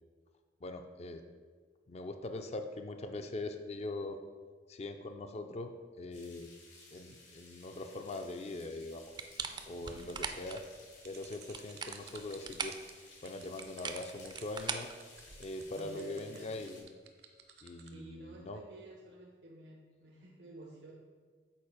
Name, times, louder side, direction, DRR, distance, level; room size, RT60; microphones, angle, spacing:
voice 1, 0.6-1.2 1.9-4.2 4.7-5.7 6.0-6.5 6.9-9.1 9.6-10.6 11.0-12.7 13.2-14.9 15.4-16.9 17.6-18.6, left 2 dB, 35° left, 7 dB, 0.4 m, -42 dB
sound 1, 6.1-16.8, left 2 dB, 80° left, 2.2 m, -57 dB
sound 2, 9.2-10.6 11.4-12.9 13.6-15.6, right 5 dB, 25° right, 0.4 m, -41 dB
voice 2, 9.8-10.2 15.7-16.5 17.8-20.9, right 2 dB, 90° right, -3 dB, 1.0 m, -51 dB
sound 3, 11.0-17.9, right 9 dB, 65° right, 0.7 m, -55 dB
7.2 x 4.4 x 4.8 m, 1.5 s
head